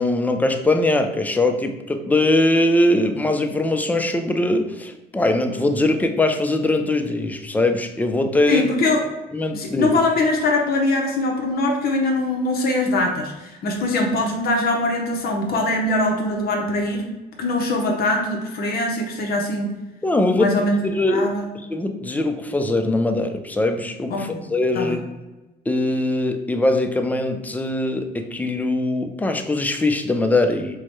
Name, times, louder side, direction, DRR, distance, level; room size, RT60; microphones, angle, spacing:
voice 1, 0.0-8.7 9.3-9.9 20.0-20.5 20.8-21.3 21.5-25.0 25.7-30.8, left 2 dB, 10° left, 6 dB, 0.4 m, -21 dB
voice 2, 8.5-9.0 9.5-17.0 17.4-19.8 20.4-20.8 21.1-21.5 24.1-24.4 24.7-25.0, left 2 dB, 55° left, 1 dB, 0.7 m, -22 dB
4.6 x 2.1 x 4.3 m, 1.1 s
cardioid pair, 120°, 18 cm